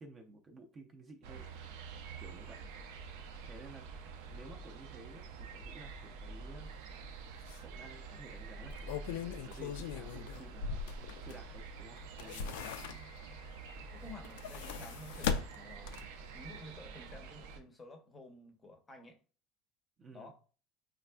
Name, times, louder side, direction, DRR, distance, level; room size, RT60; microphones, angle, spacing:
voice 1, 0.0-1.5 2.2-2.6 3.4-3.8 4.3-6.7 7.6-12.6 20.0-20.3, right 3 dB, 25° right, 0.5 m, -54 dB
sound 1, 1.2-17.6, right 4 dB, 80° right, 0.5 m, -48 dB
sound 2, 7.0-7.1 7.5-7.6 8.5-11.6 12.0-13.3 14.1-16.3 16.6-16.7, left 6 dB, 85° left, 0.3 m, -39 dB
voice 2, 13.9-19.2 20.1-20.4, left 1 dB, 15° left, 0.6 m, -52 dB
5.1 x 2.4 x 2.2 m
cardioid pair, 150°, 0 cm